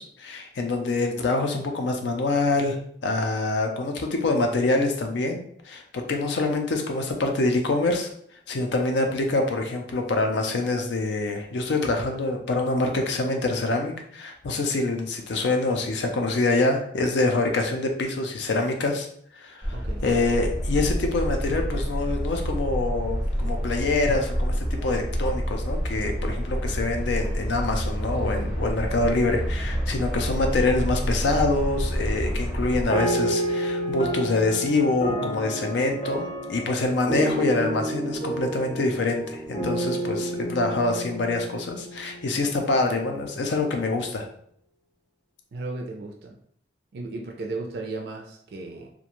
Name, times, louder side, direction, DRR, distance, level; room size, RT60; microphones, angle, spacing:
voice 1, 0.0-2.8 3.0-5.4 5.7-8.1 8.5-19.1 19.4-19.7 20.0-24.5 24.8-44.3, left 2 dB, 80° left, 3 dB, 0.4 m, -25 dB
sound 1, 19.6-32.9, equal, 5° right, 0.5 m, -28 dB
voice 2, 19.7-20.1 45.5-46.4 46.9-48.9, right 3 dB, 65° right, 1 dB, 0.4 m, -35 dB
sound 2, 32.9-42.6, right 1 dB, 35° left, 0.6 m, -30 dB
2.4 x 2.1 x 2.9 m, 0.66 s
head